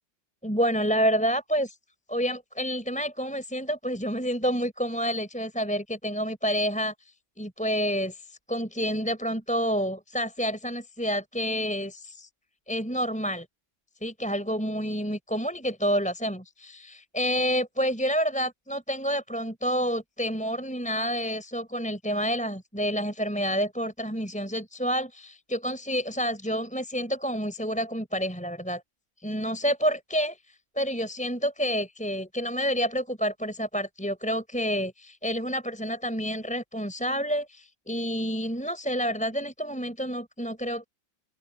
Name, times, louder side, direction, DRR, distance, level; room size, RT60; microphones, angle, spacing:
voice 1, 0.4-1.8 2.1-6.9 7.4-12.3 12.7-13.5 14.0-28.8 29.2-30.4 30.8-40.9, equal, 5° left, 4.2 m, -29 dB
omnidirectional pair, 2.2 m